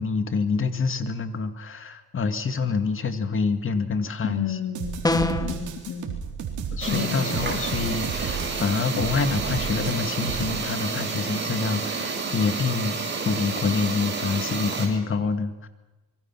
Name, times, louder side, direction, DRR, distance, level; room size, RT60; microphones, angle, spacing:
voice 1, 0.0-4.6 6.7-15.7, left 4 dB, 45° left, 8 dB, 2.2 m, -27 dB
voice 2, 4.2-6.2 6.9-7.4, left 7 dB, 85° left, 4 dB, 2.3 m, -31 dB
sound 1, 4.7-10.6, right 7 dB, 80° right, 4.0 m, -33 dB
sound 2, 5.0-5.6, left 2 dB, 10° left, 1.5 m, -23 dB
sound 3, 6.8-14.9, right 4 dB, 35° right, 6.9 m, -30 dB
25.5 x 23.5 x 6.1 m, 1.1 s
cardioid pair, 90°, 30 cm